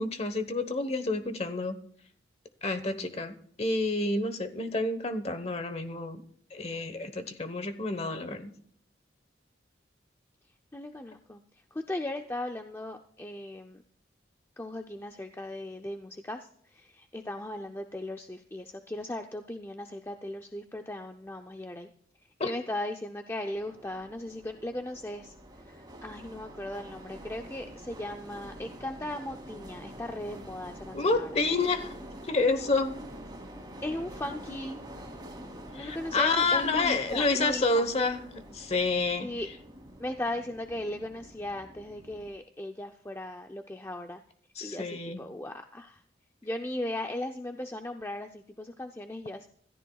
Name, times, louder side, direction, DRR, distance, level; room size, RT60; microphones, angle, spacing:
voice 1, 0.0-1.8 2.6-6.2 6.5-8.5 22.4-22.5 30.9-31.9 32.3-33.0 35.7-39.3 44.6-45.2, left 3 dB, 35° left, 1.1 m, -29 dB
voice 2, 10.7-11.4 11.7-13.8 14.6-21.9 22.4-25.3 25.7-31.3 33.8-34.8 35.7-37.9 39.2-39.5 40.0-44.2 44.6-46.0 46.4-49.5, left 1 dB, 15° left, 0.5 m, -37 dB
sound 1, 23.5-42.3, right 1 dB, 20° right, 2.5 m, -46 dB
26.0 x 14.0 x 2.3 m
head